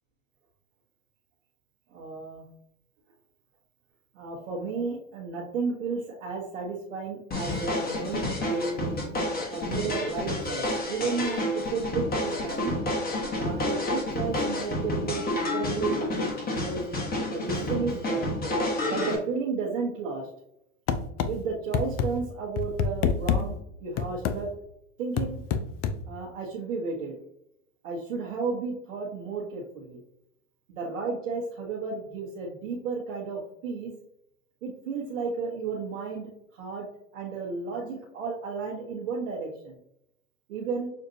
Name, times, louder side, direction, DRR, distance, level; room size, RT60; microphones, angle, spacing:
voice 1, 1.9-2.4 4.1-12.7 13.4-17.0 17.3-18.3 18.8-20.3 21.3-24.5 25.0-25.4 26.0-27.2 27.8-30.0 30.7-33.9 34.6-36.9 37.1-39.8 40.5-40.9, right 4 dB, 70° right, -3 dB, 1.2 m, -33 dB
sound 1, 7.3-19.2, left 1 dB, 25° left, 1.3 m, -29 dB
sound 2, 20.9-21.3 21.7-22.1 22.6-23.4 24.0-24.4 25.2-26.0, left 7 dB, 40° left, 0.5 m, -25 dB
6.5 x 2.5 x 2.7 m, 0.77 s
hypercardioid pair, 100°, 38 cm